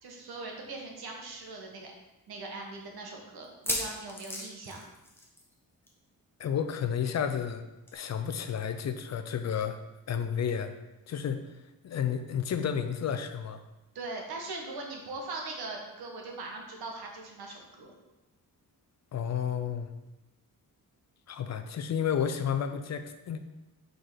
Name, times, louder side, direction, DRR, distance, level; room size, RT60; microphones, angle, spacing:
voice 1, 0.0-1.9 2.3-4.8 13.9-17.9, right 3 dB, 85° right, 0 dB, 1.4 m, -40 dB
sound 1, 0.8-0.9 1.2-1.3 1.9-2.0 3.4-5.6 5.8-6.1 6.3-6.4 7.9-8.0, left 1 dB, 5° left, 0.9 m, -36 dB
voice 2, 6.4-7.6 7.9-9.8 10.1-10.7 11.1-13.6 19.1-19.9 21.3-23.4, left 8 dB, 45° left, 9 dB, 0.5 m, -31 dB
6.3 x 3.9 x 4.9 m, 1.0 s
wide cardioid pair, 165°, 37 cm